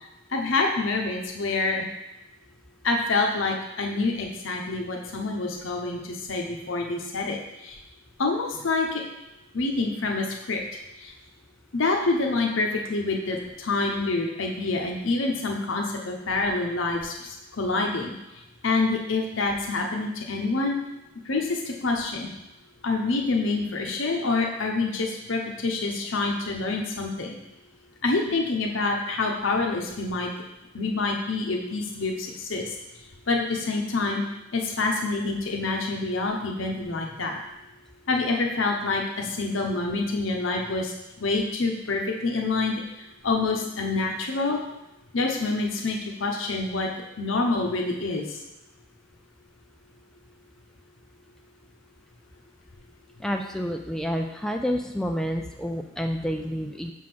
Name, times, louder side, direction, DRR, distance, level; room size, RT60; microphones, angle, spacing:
voice 1, 0.3-1.8 2.8-7.8 8.2-9.0 9.5-10.6 11.0-11.1 11.7-18.1 18.6-20.8 21.3-22.3 22.8-27.4 28.0-30.3 30.7-32.7 33.3-34.2 34.5-37.4 38.1-40.9 41.2-42.8 43.2-44.6 45.1-46.9 47.2-48.4, left 3 dB, 80° left, 1 dB, 0.9 m, -27 dB
voice 2, 53.2-56.9, equal, 5° left, 3 dB, 0.3 m, -29 dB
6.1 x 3.7 x 5.9 m, 0.94 s
head